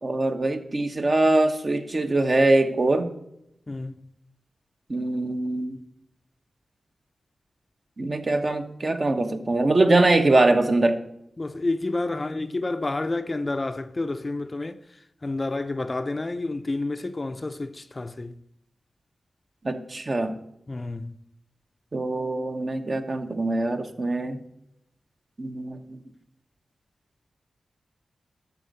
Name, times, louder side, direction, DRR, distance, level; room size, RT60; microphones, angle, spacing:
voice 1, 0.0-3.1 4.9-5.8 8.0-11.0 19.6-20.4 21.9-24.4 25.4-26.0, right 2 dB, 40° right, 1.0 m, -23 dB
voice 2, 3.7-4.1 11.4-18.4 20.7-21.2, left 2 dB, 30° left, 0.5 m, -30 dB
12.0 x 4.0 x 7.7 m
wide cardioid pair, 95°, 0 cm